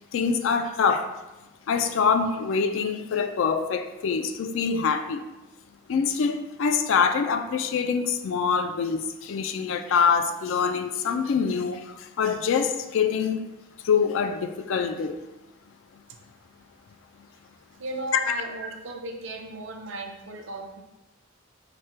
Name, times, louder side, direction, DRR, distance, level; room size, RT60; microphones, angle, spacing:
voice 1, 0.1-1.1 1.7-5.2 5.9-13.4 13.8-15.2 18.1-18.3, left 6 dB, 65° left, 0.3 m, -25 dB
voice 2, 17.8-20.8, right 2 dB, 60° right, 0.5 m, -35 dB
4.9 x 2.1 x 4.3 m
head